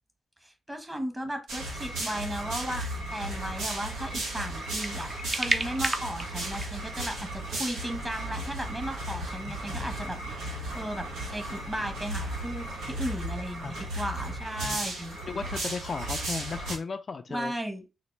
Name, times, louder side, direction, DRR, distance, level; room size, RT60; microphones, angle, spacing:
voice 1, 0.4-15.2 17.3-17.8, equal, 15° right, 1.2 m, -36 dB
sound 1, 1.5-16.8, right 1 dB, 85° right, 1.0 m, -35 dB
sound 2, 4.5-6.9, right 2 dB, 35° right, 0.6 m, -32 dB
sound 3, 8.0-13.2, right 2 dB, 65° right, 1.5 m, -50 dB
voice 2, 9.5-10.0 13.6-13.7 14.6-14.8 15.2-17.5, left 4 dB, 50° left, 0.3 m, -36 dB
4.0 x 2.1 x 3.2 m
supercardioid pair, 45°, 0 cm